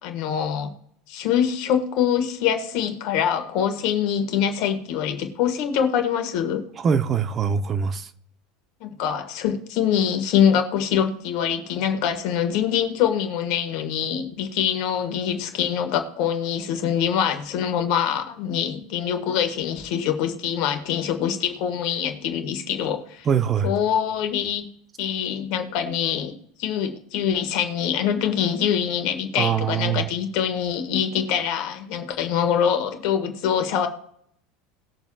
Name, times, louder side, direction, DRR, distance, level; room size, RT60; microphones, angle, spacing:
voice 1, 0.0-0.7 1.1-6.6 8.8-23.3 23.6-24.6 25.0-26.3 26.6-33.9, left 8 dB, 55° left, 7 dB, 1.7 m, -24 dB
voice 2, 6.8-8.1 23.3-23.7 29.4-30.1, right 7 dB, 35° right, 11 dB, 0.8 m, -23 dB
19.5 x 7.1 x 2.4 m, 0.67 s
figure-of-eight pair, 80°, 0 cm